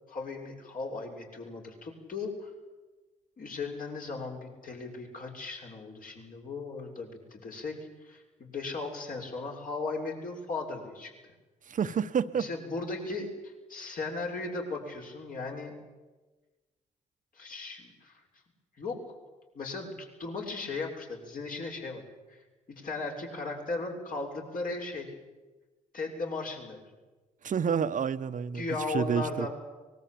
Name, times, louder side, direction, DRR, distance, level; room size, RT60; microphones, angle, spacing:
voice 1, 0.1-2.5 3.4-7.8 8.0-11.1 12.3-15.7 17.3-18.2 18.8-19.1 19.5-22.4 22.7-25.1 25.9-26.8 28.5-29.5, left 3 dB, 50° left, 1 dB, 6.7 m, -37 dB
voice 2, 11.7-12.5 27.4-29.5, right 7 dB, 45° right, 11 dB, 1.2 m, -29 dB
24.0 x 21.5 x 8.7 m, 1.2 s
hypercardioid pair, 45°, 18 cm